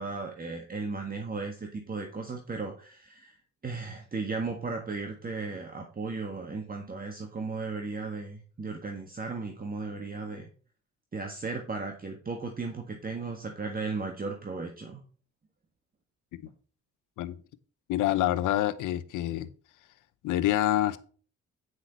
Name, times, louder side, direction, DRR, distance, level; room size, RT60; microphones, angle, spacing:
voice 1, 0.0-3.4 3.6-10.5 11.1-15.0, right 4 dB, 30° right, 3 dB, 1.7 m, -36 dB
voice 2, 17.9-19.5 20.2-21.0, left 14 dB, 85° left, 14 dB, 0.9 m, -27 dB
9.8 x 5.8 x 4.2 m, 0.40 s
cardioid pair, 90°, 30 cm